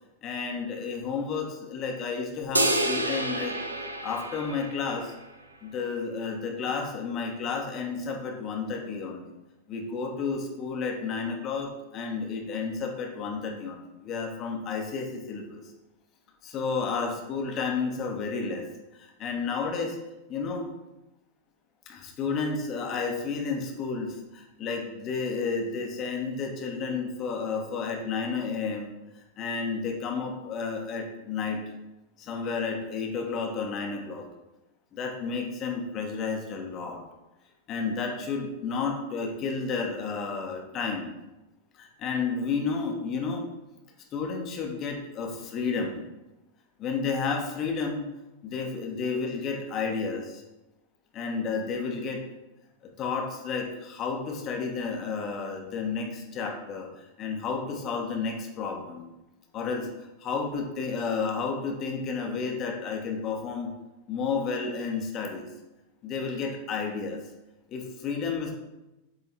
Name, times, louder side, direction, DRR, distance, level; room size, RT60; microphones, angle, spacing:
voice 1, 0.2-3.6 4.0-5.1 5.6-9.3 9.7-15.6 16.4-18.7 18.9-20.0 20.3-20.7 21.9-31.6 32.2-34.3 34.9-37.0 37.7-41.1 41.7-43.4 44.1-46.0 46.8-48.1 48.4-50.4 51.1-52.2 53.0-59.1 59.5-63.7 64.1-65.5 66.0-67.2 67.7-68.5, left 5 dB, 35° left, 2 dB, 1.2 m, -31 dB
sound 1, 2.5-5.1, right 1 dB, 80° right, 0.6 m, -28 dB
8.1 x 3.8 x 4.5 m, 0.99 s
figure-of-eight pair, 90°, 0 cm